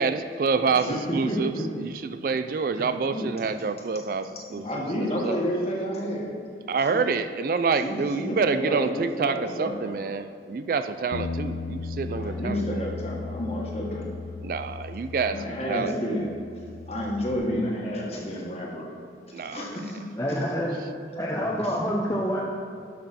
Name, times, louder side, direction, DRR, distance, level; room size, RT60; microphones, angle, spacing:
voice 1, 0.0-1.5 1.8-4.8 5.2-5.4 6.7-12.9 14.4-16.3 19.3-19.8, right 4 dB, 50° right, 11 dB, 0.3 m, -27 dB
voice 2, 0.6-1.0 1.3-1.7 3.1-3.3 4.5-6.3 6.9-7.0 7.8-9.9 12.1-14.1 15.3-16.3 16.9-18.8 19.5-20.4 21.6-21.7 22.1-22.2, equal, 35° left, -2 dB, 1.6 m, -30 dB
Bass guitar, 11.1-15.9 16.2-17.4, left 4 dB, 75° left, 0.4 m, -36 dB
voice 3, 20.2-20.8 21.2-22.4, equal, 15° left, -3 dB, 0.7 m, -27 dB
11.5 x 6.2 x 4.2 m, 2.4 s
head